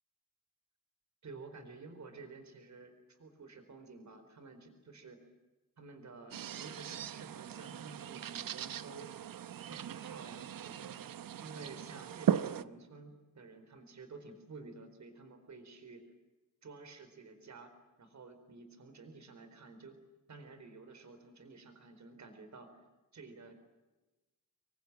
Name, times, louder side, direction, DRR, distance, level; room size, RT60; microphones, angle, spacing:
voice 1, 1.2-5.2 5.8-9.1 9.7-10.9 11.3-16.0 16.6-22.8 23.1-23.6, right 3 dB, 55° right, 9 dB, 4.4 m, -52 dB
sound 1, 6.3-12.6, right 9 dB, 80° right, 0.9 m, -38 dB
27.0 x 23.5 x 9.1 m, 1.1 s
wide cardioid pair, 145°, 33 cm